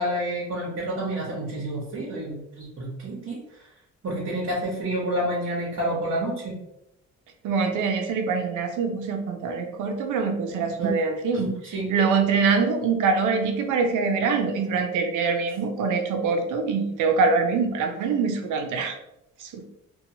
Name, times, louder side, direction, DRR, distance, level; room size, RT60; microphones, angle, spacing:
voice 1, 0.0-3.4 4.0-6.6 10.8-10.9 11.3-11.9, right 1 dB, 60° right, -6 dB, 0.9 m, -29 dB
voice 2, 7.4-11.5 11.9-18.9 19.4-19.6, right 5 dB, 85° right, 4 dB, 0.6 m, -24 dB
2.8 x 2.2 x 2.7 m, 0.83 s
cardioid pair, 90°, 30 cm